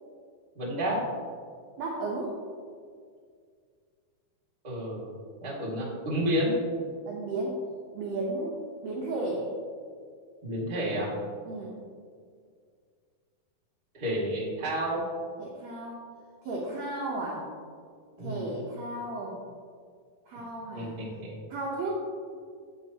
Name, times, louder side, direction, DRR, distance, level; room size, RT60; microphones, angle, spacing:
voice 1, 0.5-1.0 4.6-5.1 5.4-6.6 10.4-11.1 13.9-15.0 18.2-18.5 20.7-21.4, equal, 25° right, -6 dB, 1.0 m, -30 dB
voice 2, 1.8-2.4 7.1-7.6 7.9-9.5 11.4-11.7 15.4-16.0 16.4-17.5 18.2-19.4 20.2-21.1 21.5-21.9, right 2 dB, 70° right, -3 dB, 1.6 m, -34 dB
8.6 x 8.1 x 2.9 m, 2.1 s
omnidirectional pair, 4.3 m